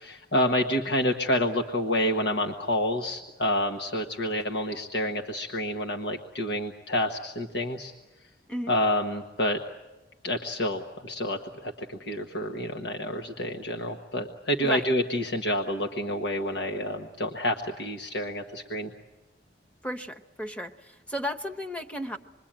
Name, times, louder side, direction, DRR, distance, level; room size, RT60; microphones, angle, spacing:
voice 1, 0.0-7.9 8.7-9.6 10.2-18.9, left 1 dB, 85° left, 2 dB, 1.4 m, -28 dB
voice 2, 19.8-22.2, equal, 5° left, 4 dB, 1.0 m, -34 dB
27.0 x 22.5 x 8.9 m, 1.1 s
head